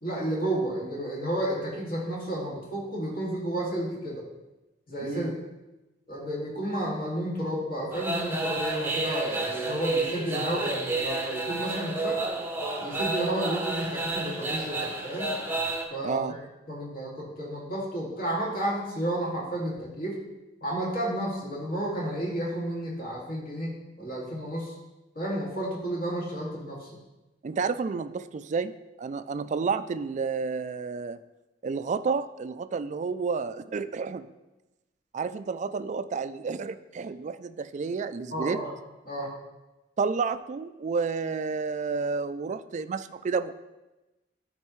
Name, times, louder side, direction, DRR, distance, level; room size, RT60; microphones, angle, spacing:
voice 1, 0.0-4.2 4.9-5.3 6.1-12.2 12.8-15.3 15.9-20.2 20.6-24.7 25.2-27.0 38.3-38.7 39.1-39.3, right 1 dB, 55° left, -4 dB, 2.3 m, -31 dB
voice 2, 5.0-5.3 16.0-16.3 27.4-28.7 29.0-31.2 31.6-34.3 35.1-38.6 40.0-43.5, right 5 dB, 40° right, 12 dB, 0.3 m, -30 dB
sound 1, 7.9-15.8, right 2 dB, 15° right, 0.7 m, -30 dB
13.0 x 4.4 x 3.1 m, 1.0 s
head